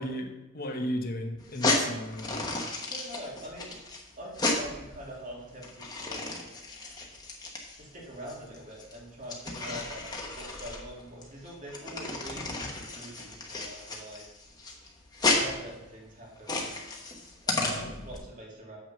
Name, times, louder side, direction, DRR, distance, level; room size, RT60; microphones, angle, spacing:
voice 1, 0.0-2.3, equal, 45° left, 4 dB, 1.0 m, -34 dB
sound 1, 1.4-18.2, left 2 dB, 20° left, 1.2 m, -33 dB
voice 2, 2.8-3.7 4.2-6.3 7.8-14.3 15.2-16.8 17.4-18.8, equal, 40° right, -3 dB, 2.2 m, -44 dB
7.3 x 6.0 x 5.7 m, 1.0 s
head